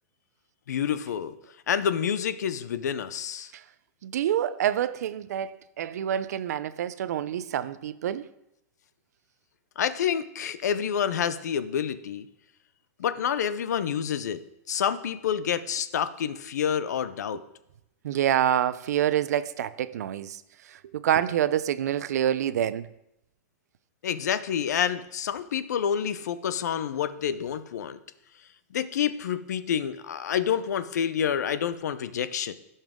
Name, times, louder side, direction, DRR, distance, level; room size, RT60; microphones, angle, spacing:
voice 1, 0.7-1.3 1.7-3.5 9.8-12.3 13.0-14.4 14.7-17.4 24.0-28.0 28.7-32.5, left 8 dB, 85° left, 0.6 m, -28 dB
voice 2, 4.0-8.3 18.0-20.4 20.7-22.9, right 10 dB, 75° right, 0.5 m, -27 dB
15.5 x 5.6 x 3.6 m
hypercardioid pair, 150°, 9 cm